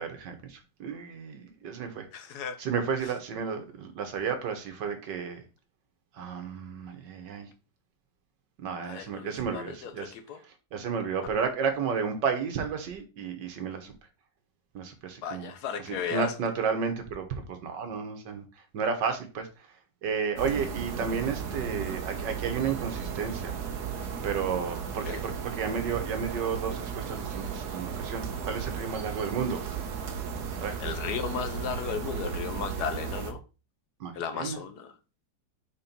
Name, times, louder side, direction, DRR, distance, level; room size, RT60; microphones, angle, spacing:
voice 1, 0.0-2.1 2.6-5.4 6.2-7.5 8.6-10.1 10.7-13.9 14.8-15.5 15.8-18.4 18.7-19.5 20.0-23.6 24.2-25.3 25.6-29.7 30.6-30.8 34.0-34.6, right 6 dB, 85° right, 1.8 m, -32 dB
voice 2, 2.1-2.6 8.8-10.4 11.2-11.3 15.2-16.3 25.1-25.2 30.8-33.4 34.1-34.9, left 7 dB, 70° left, 1.3 m, -35 dB
sound 1, 20.4-33.3, right 7 dB, 70° right, 1.5 m, -35 dB
4.7 x 4.5 x 5.2 m
omnidirectional pair, 1.8 m